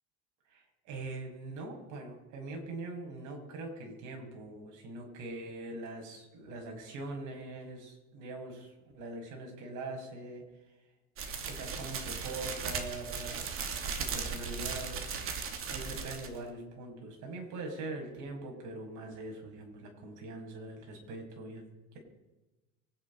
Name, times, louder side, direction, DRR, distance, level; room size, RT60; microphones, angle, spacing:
voice 1, 0.5-10.4 11.4-13.6 13.9-15.1 15.7-22.0, right 2 dB, 65° right, 1 dB, 6.4 m, -42 dB
sound 1, 11.2-16.4, right 6 dB, 40° right, 2.5 m, -37 dB
24.5 x 10.5 x 5.6 m, 1.1 s
cardioid pair, 130°, 33 cm